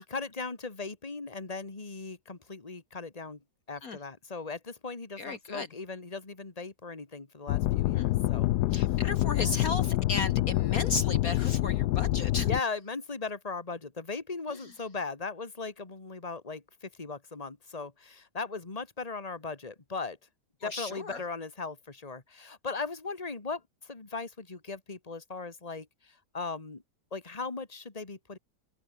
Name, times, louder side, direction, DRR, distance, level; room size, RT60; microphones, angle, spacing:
voice 1, 0.0-3.4 3.7-8.5 9.3-9.6 12.4-20.2 20.6-26.8 27.1-28.4, left 4 dB, 20° left, 2.3 m, -38 dB
voice 2, 5.2-5.7 7.9-8.1 8.7-12.5 14.5-14.6 20.6-21.2, left 3 dB, 55° left, 2.0 m, -35 dB
sound 1, 7.5-12.6, left 16 dB, 75° left, 1.1 m, -27 dB
open air
omnidirectional pair, 1.8 m